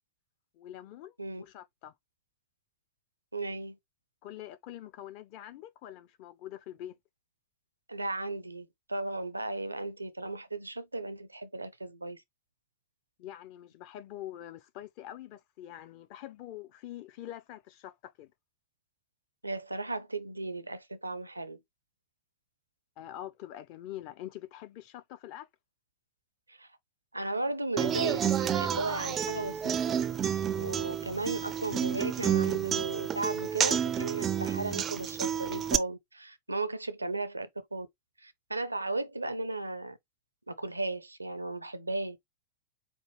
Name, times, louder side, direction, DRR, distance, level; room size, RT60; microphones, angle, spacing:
voice 1, 0.5-1.9 4.2-6.9 13.2-18.3 23.0-25.5, left 13 dB, 45° left, 0.6 m, -45 dB
voice 2, 3.3-3.8 7.9-12.2 19.4-21.6 26.5-26.7 27.1-29.8 30.5-37.9 38.2-40.0 40.5-42.2, right 2 dB, 85° right, 0.5 m, -35 dB
Human voice / Acoustic guitar, 27.8-35.8, right 9 dB, 25° right, 0.4 m, -30 dB
4.4 x 2.6 x 3.0 m
figure-of-eight pair, 90°, 0 cm